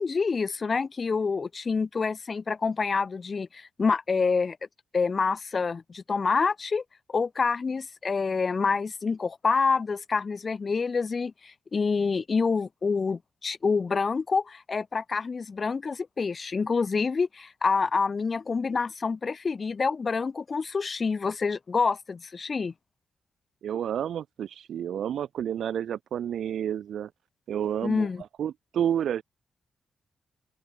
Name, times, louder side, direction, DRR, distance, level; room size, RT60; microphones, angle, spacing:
voice 1, 0.0-4.6 4.9-6.8 7.1-22.7 27.8-28.2, left 4 dB, 45° left, 2.8 m, -27 dB
voice 2, 23.6-27.1 27.5-28.1 28.4-29.2, right 9 dB, 80° right, 2.4 m, -30 dB
open air
cardioid pair, 75°, 0 cm